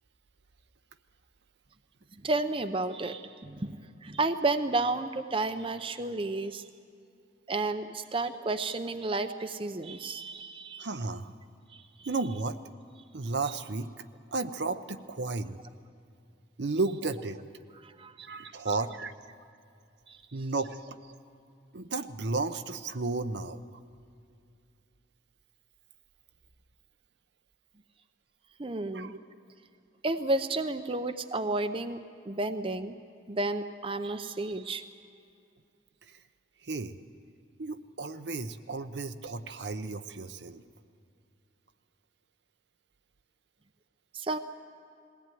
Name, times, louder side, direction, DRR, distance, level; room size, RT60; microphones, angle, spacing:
voice 1, 2.2-6.6 7.5-10.9 11.7-11.8 17.8-18.3 20.1-20.2 28.6-29.1 30.0-32.0 32.3-33.0 33.3-34.8 44.1-44.4, right 2 dB, 30° right, 9 dB, 0.6 m, -31 dB
voice 2, 10.8-11.3 12.1-12.6 13.1-14.1 14.3-15.6 16.6-17.4 18.2-19.1 20.3-20.8 21.7-23.7 28.9-29.2 36.6-36.9 37.6-40.6, right 3 dB, 70° right, 9 dB, 0.8 m, -33 dB
20.5 x 17.0 x 9.2 m, 2.4 s
head